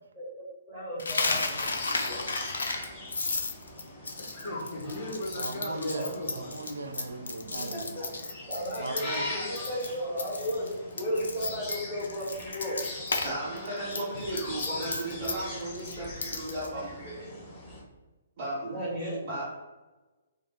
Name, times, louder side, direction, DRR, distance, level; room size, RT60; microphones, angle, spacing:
voice 1, 0.1-2.3 5.9-6.0 7.5-8.0 8.5-10.7 11.0-12.8 18.7-19.2, equal, 10° right, -10 dB, 1.5 m, -35 dB
Coin (dropping), 1.0-9.3 9.6-9.9 10.2-13.3 13.6-16.7, left 3 dB, 65° left, 0.4 m, -33 dB
sound 1, 1.3-17.8, left 2 dB, 20° left, 1.1 m, -41 dB
voice 2, 4.2-6.3 14.1-14.2 14.7-15.1, left 1 dB, 40° left, -2 dB, 0.8 m, -37 dB
voice 3, 5.4-7.9 8.8-9.4, right 3 dB, 65° right, 5 dB, 0.4 m, -38 dB
voice 4, 13.2-17.3 18.4-18.8 19.2-19.4, right 1 dB, 30° right, -9 dB, 1.2 m, -35 dB
3.6 x 2.3 x 2.2 m, 1.2 s
figure-of-eight pair, 125°, 0 cm